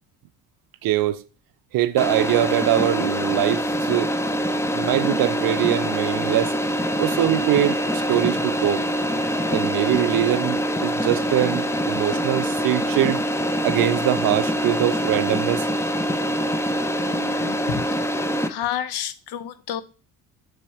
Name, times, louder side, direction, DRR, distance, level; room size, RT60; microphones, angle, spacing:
voice 1, 0.8-1.2 1.7-4.1 4.7-6.6 7.0-8.9 9.5-13.2 13.6-15.7, right 13 dB, 45° right, 0.6 m, -23 dB
sound 1, 2.0-18.5, equal, 5° left, 0.6 m, -24 dB
voice 2, 17.0-18.0 18.5-19.8, left 10 dB, 50° left, 0.8 m, -30 dB
6.9 x 3.4 x 5.5 m
hypercardioid pair, 55°, 48 cm